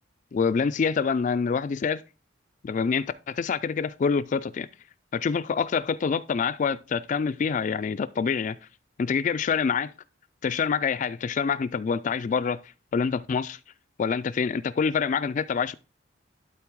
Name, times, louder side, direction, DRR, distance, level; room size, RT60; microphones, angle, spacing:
voice 1, 0.3-2.0 2.6-4.7 5.1-8.6 9.0-9.9 10.4-12.6 12.9-13.6 14.0-15.7, left 6 dB, 40° left, 0.3 m, -26 dB
12.0 x 4.1 x 4.6 m
head